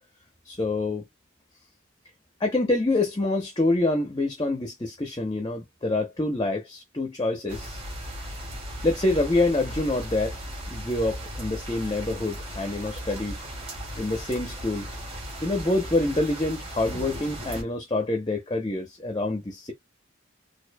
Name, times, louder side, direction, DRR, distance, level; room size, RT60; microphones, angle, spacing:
voice 1, 0.5-1.0 2.4-7.8 8.8-10.4 10.7-13.4 13.9-14.9 15.4-19.7, left 2 dB, 20° left, 0.7 m, -26 dB
sound 1, 7.5-17.6, equal, 30° right, 1.9 m, -37 dB
4.6 x 2.6 x 2.2 m
head